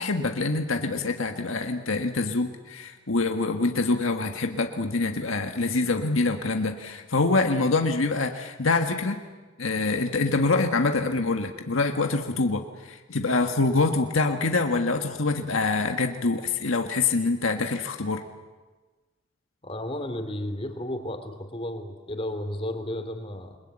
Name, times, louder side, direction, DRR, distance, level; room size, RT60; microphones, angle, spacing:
voice 1, 0.0-9.2 9.6-18.2, left 3 dB, 90° left, 4 dB, 1.6 m, -25 dB
voice 2, 19.6-23.6, left 1 dB, 30° left, 7 dB, 2.7 m, -33 dB
28.5 x 21.5 x 8.9 m, 1.3 s
head